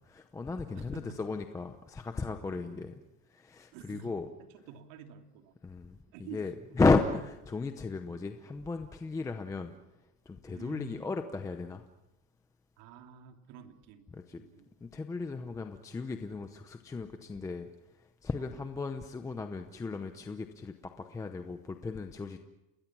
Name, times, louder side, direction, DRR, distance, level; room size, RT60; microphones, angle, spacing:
voice 1, 0.1-2.9 3.3-4.3 5.6-9.7 10.3-11.8 14.1-14.4 14.8-17.7 18.2-22.4, left 3 dB, 5° left, 7 dB, 0.7 m, -34 dB
voice 2, 0.7-1.3 2.3-2.9 3.7-5.5 6.1-6.4 10.5-11.1 12.8-14.7 18.4-18.5, right 6 dB, 50° right, 5 dB, 2.9 m, -49 dB
30.0 x 20.5 x 6.2 m, 0.94 s
supercardioid pair, 155°, 46 cm